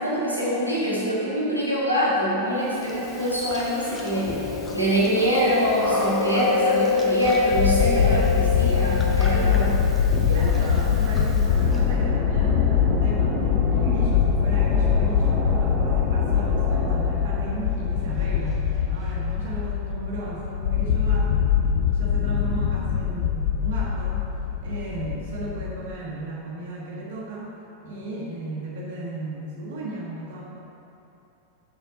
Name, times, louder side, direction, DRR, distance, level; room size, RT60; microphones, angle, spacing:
voice 1, 0.0-9.7, equal, 90° left, -8 dB, 1.7 m, -24 dB
Chewing mastication, 2.8-11.8, left 3 dB, 20° left, 0.9 m, -27 dB
sound 1, 7.5-25.9, left 8 dB, 50° left, 0.4 m, -23 dB
voice 2, 10.3-13.4 13.7-21.6 21.8-24.3 24.6-27.5 27.8-30.5, right 2 dB, 55° right, -4 dB, 1.1 m, -35 dB
sound 2, 11.0-19.1, right 2 dB, 25° right, 1.0 m, -33 dB
6.6 x 6.2 x 3.9 m, 2.9 s
figure-of-eight pair, 90°, 0 cm